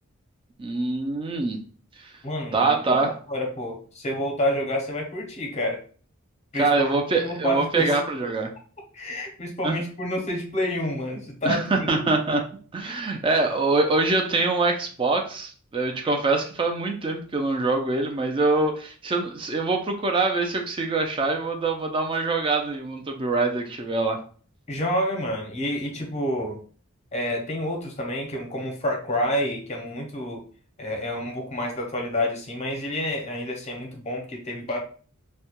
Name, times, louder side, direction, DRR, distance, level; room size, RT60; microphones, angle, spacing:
voice 1, 0.6-1.6 2.0-2.1 2.5-3.2 6.5-8.5 9.6-9.8 11.4-12.4 12.7-24.2, right 3 dB, 25° right, 4 dB, 0.3 m, -24 dB
voice 2, 2.2-2.8 3.3-5.8 6.5-6.9 7.2-7.8 8.9-11.9 12.8-13.0 24.7-26.6 27.1-30.4 30.8-34.8, left 1 dB, 30° left, 1 dB, 0.6 m, -29 dB
2.2 x 2.1 x 2.8 m, 0.42 s
head